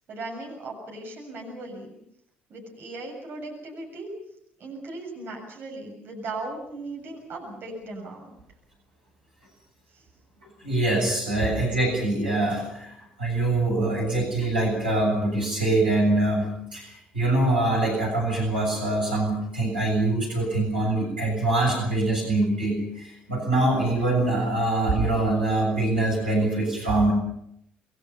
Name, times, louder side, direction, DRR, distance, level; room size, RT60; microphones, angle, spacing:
voice 1, 0.1-2.0 2.5-4.1 4.6-8.3 9.9-10.0, right 2 dB, 45° right, 1 dB, 7.3 m, -37 dB
voice 2, 10.6-27.1, right 2 dB, 85° right, -3 dB, 7.3 m, -24 dB
27.5 x 22.0 x 5.7 m, 0.74 s
figure-of-eight pair, 50°, 5 cm